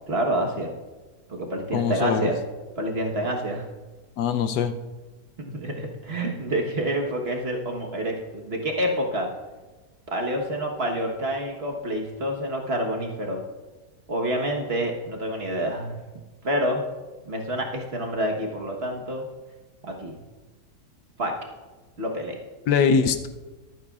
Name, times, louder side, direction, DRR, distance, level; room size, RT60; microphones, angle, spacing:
voice 1, 0.1-0.7 1.3-2.4 2.8-3.7 5.5-9.3 10.1-13.4 14.1-16.0 16.4-16.8 17.2-19.3 19.8-20.2 21.2-21.3 22.0-22.4, right 1 dB, 40° right, 1 dB, 1.3 m, -27 dB
voice 2, 1.7-2.3 4.2-4.7 22.7-23.3, left 6 dB, 90° left, 9 dB, 1.3 m, -22 dB
23.0 x 9.1 x 2.4 m, 1.2 s
omnidirectional pair, 1.7 m